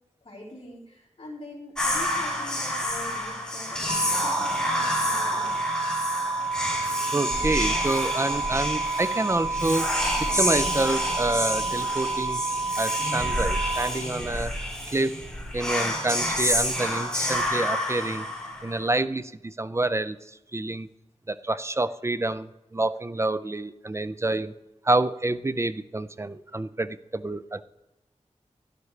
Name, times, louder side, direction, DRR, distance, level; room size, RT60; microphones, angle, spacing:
voice 1, 0.2-5.6, left 1 dB, 50° left, -6 dB, 3.8 m, -44 dB
Whispering, 1.8-18.9, left 1 dB, 5° left, 2.2 m, -29 dB
sound 1, 3.9-13.9, right 3 dB, 75° right, 1.0 m, -29 dB
voice 2, 7.1-9.9 10.2-12.4 12.8-14.5 14.9-15.2 15.5-18.2 18.6-20.2 20.5-20.9 21.3-22.5 22.7-24.5 24.9-27.6, right 2 dB, 25° right, 14 dB, 0.4 m, -27 dB
11.5 x 10.5 x 3.2 m, 0.94 s
wide cardioid pair, 85°, 12 cm